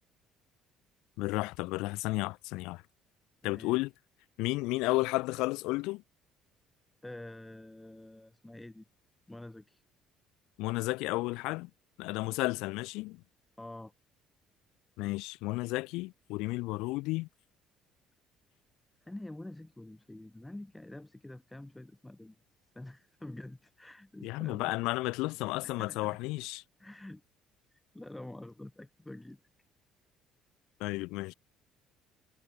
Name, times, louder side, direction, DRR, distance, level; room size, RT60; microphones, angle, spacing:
voice 1, 1.2-2.8 3.4-3.9 4.4-6.0 10.6-11.7 12.0-13.2 15.0-17.3 24.2-26.6 30.8-31.3, left 22 dB, 85° left, 1.5 m, -32 dB
voice 2, 3.4-3.7 7.0-8.8 9.3-9.8 13.6-13.9 19.0-22.4 22.7-24.7 25.6-26.2 26.8-27.2 27.7-29.4, left 1 dB, 10° left, 4.2 m, -47 dB
cardioid pair, 95°, 0 cm